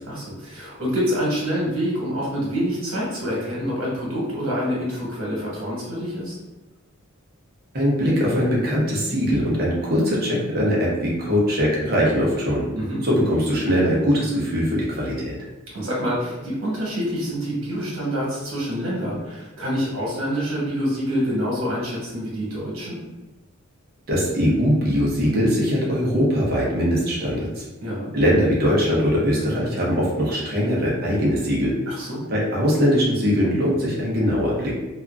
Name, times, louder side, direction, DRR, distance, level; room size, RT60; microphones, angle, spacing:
voice 1, 0.1-6.3 12.7-13.0 15.7-23.0 27.8-28.1 31.9-32.3, equal, 75° right, -5 dB, 1.2 m, -26 dB
voice 2, 7.7-12.6 13.0-15.3 24.1-27.6 28.1-31.7 32.3-34.7, equal, 45° right, -5 dB, 0.7 m, -21 dB
2.8 x 2.3 x 2.4 m, 1.1 s
head